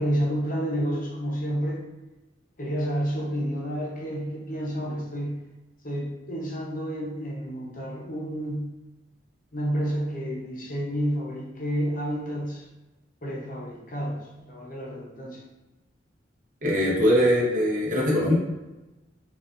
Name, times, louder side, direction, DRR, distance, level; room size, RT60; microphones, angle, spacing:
voice 1, 0.0-1.9 2.6-5.4 5.8-8.7 9.5-12.7 13.2-15.4, equal, 50° left, -2 dB, 0.8 m, -30 dB
voice 2, 16.6-18.4, equal, 45° right, -4 dB, 1.0 m, -21 dB
5.0 x 2.5 x 2.5 m, 1.1 s
head